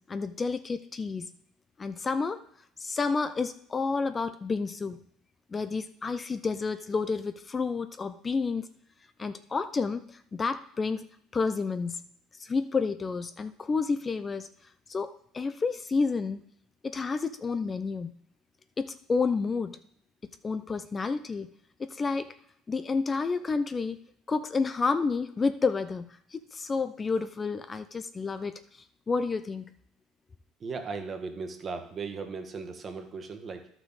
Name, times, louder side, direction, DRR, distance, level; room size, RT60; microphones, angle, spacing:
voice 1, 0.1-1.3 1.8-2.4 2.8-5.0 5.5-8.7 9.2-10.0 10.3-11.1 11.3-12.0 12.4-14.5 14.9-16.4 16.8-18.1 18.8-19.8 20.4-21.5 21.8-22.3 22.7-24.0 24.3-26.1 26.3-28.5 29.1-29.7, left 4 dB, 30° left, 10 dB, 0.5 m, -30 dB
voice 2, 30.6-33.7, right 4 dB, 40° right, 6 dB, 1.4 m, -37 dB
11.5 x 6.0 x 4.0 m, 0.68 s
supercardioid pair, 80°, 0 cm